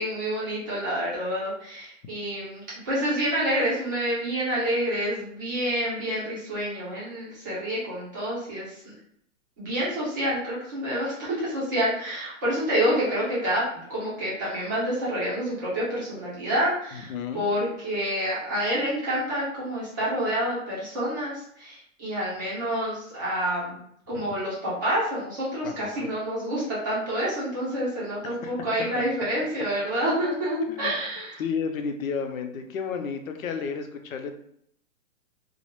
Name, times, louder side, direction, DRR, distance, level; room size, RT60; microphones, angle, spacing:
voice 1, 0.0-8.9 9.6-31.4, equal, 15° right, -8 dB, 0.5 m, -28 dB
voice 2, 16.9-17.4 24.1-24.2 25.6-26.1 28.4-28.5 29.0-29.1 30.7-30.9 31.4-34.4, left 6 dB, 85° left, 6 dB, 0.6 m, -32 dB
2.3 x 2.1 x 2.9 m, 0.69 s
hypercardioid pair, 165°, 40 cm